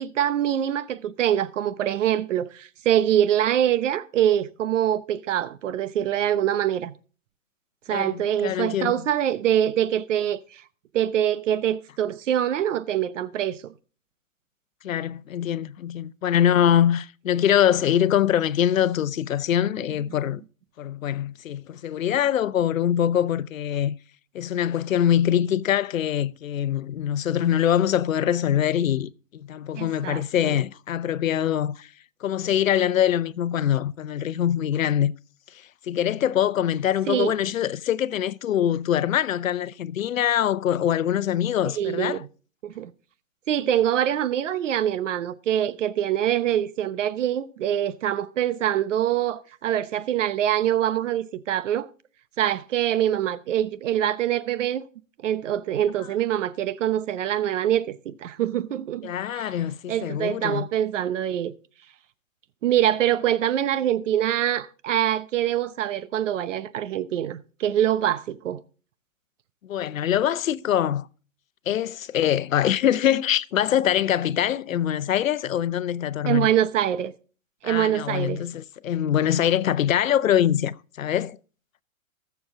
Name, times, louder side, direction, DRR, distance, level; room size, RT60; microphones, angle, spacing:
voice 1, 0.0-6.9 7.9-10.6 10.9-13.7 29.8-30.6 37.1-37.3 41.8-42.3 42.6-42.9 43.5-51.9 52.4-54.9 55.2-59.5 59.9-61.5 62.6-68.6 76.3-77.1 77.6-78.4, right 11 dB, 65° right, 0.9 m, -24 dB
voice 2, 7.9-8.9 14.8-20.4 20.8-24.0 24.3-31.9 32.2-35.1 35.5-42.2 59.0-60.7 69.6-71.1 71.7-76.5 77.6-81.4, left 10 dB, 80° left, 0.8 m, -24 dB
20.0 x 7.1 x 3.6 m
hypercardioid pair, 130°, 40 cm